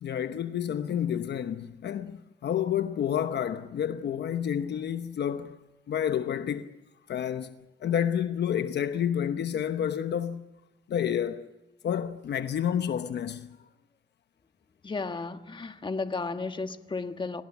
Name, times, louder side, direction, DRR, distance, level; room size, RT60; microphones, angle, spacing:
voice 1, 0.0-5.6 5.9-6.7 7.1-7.5 7.8-10.4 10.9-11.5 11.8-13.6, left 9 dB, 60° left, 1.0 m, -29 dB
voice 2, 14.8-17.4, left 3 dB, 25° left, 1.5 m, -33 dB
27.5 x 18.5 x 7.2 m
cardioid pair, 90°, 20 cm